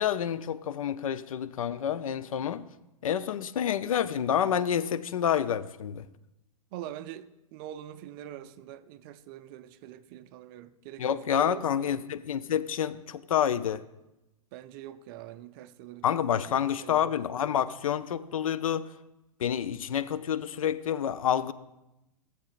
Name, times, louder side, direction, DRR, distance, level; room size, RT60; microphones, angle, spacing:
voice 1, 0.0-2.7 3.0-6.1 11.0-13.8 16.0-18.9 19.4-21.5, left 9 dB, 65° left, 0.5 m, -28 dB
voice 2, 6.7-12.1 14.5-16.0 16.5-17.2, right 12 dB, 40° right, 0.5 m, -44 dB
16.5 x 7.4 x 2.4 m
figure-of-eight pair, 105°, 19 cm